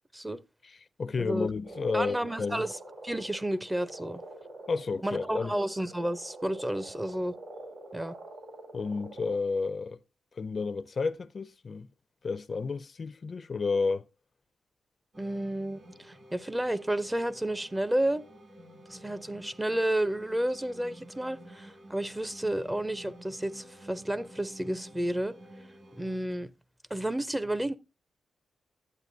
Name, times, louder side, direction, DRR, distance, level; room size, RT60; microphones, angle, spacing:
voice 1, 0.6-2.7 4.7-5.6 8.7-10.0 10.4-11.9 12.2-14.1, left 4 dB, 45° left, 0.4 m, -31 dB
voice 2, 1.2-1.5 1.9-2.8 3.0-4.2 5.0-7.4 7.9-8.2 15.2-18.2 18.9-25.4 26.0-26.5 26.9-27.7, right 1 dB, 10° right, 0.4 m, -31 dB
Frog, 1.6-9.4, right 1 dB, 70° right, 3.8 m, -45 dB
sound 1, 15.1-26.2, equal, 50° right, 1.9 m, -51 dB
10.5 x 8.0 x 2.6 m
cardioid pair, 85°, 0 cm